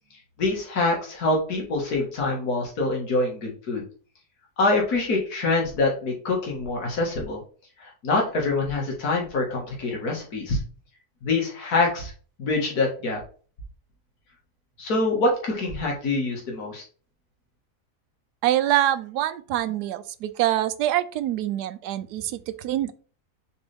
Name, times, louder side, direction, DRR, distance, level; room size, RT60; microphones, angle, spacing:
voice 1, 0.4-3.8 4.6-7.4 7.8-10.6 11.2-12.1 12.4-13.2 14.8-16.8, left 2 dB, 70° left, -1 dB, 2.3 m, -25 dB
voice 2, 18.4-22.9, right 13 dB, 80° right, 13 dB, 1.2 m, -25 dB
7.1 x 4.5 x 3.5 m, 0.40 s
omnidirectional pair, 1.7 m